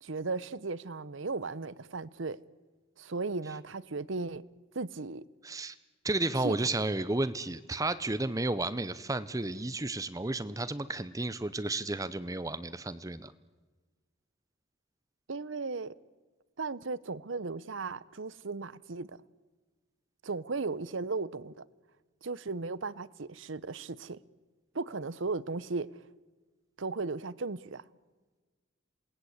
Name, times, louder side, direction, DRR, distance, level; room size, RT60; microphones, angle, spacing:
voice 1, 0.0-2.4 3.0-4.4 4.7-5.2 6.4-6.6 15.3-15.9 16.6-19.2 20.2-21.6 22.2-24.2 24.7-26.0 26.8-27.8, right 3 dB, 70° right, 0.8 m, -36 dB
voice 2, 5.4-5.7 6.0-13.3, right 2 dB, 15° right, 0.7 m, -32 dB
28.0 x 19.5 x 8.1 m
head